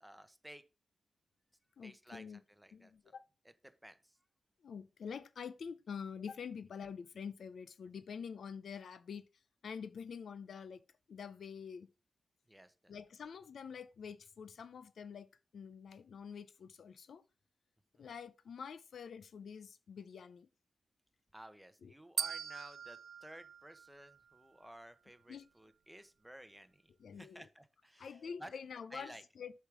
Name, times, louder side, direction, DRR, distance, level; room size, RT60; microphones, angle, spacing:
voice 1, 0.0-0.6 1.8-3.1 3.4-3.5 3.8-4.2 12.5-12.9 17.9-18.1 21.3-28.5 28.9-29.4, right 1 dB, 5° right, 0.9 m, -55 dB
voice 2, 1.8-2.4 2.7-3.2 4.6-9.2 9.6-10.8 11.1-11.9 12.9-15.3 15.5-17.2 18.0-20.5 21.8-21.9 25.3-25.5 27.0-27.5 28.0-29.5, left 6 dB, 75° left, 0.5 m, -47 dB
sound 1, 22.2-24.4, right 7 dB, 75° right, 0.3 m, -42 dB
8.1 x 3.5 x 6.1 m
wide cardioid pair, 115°, 0 cm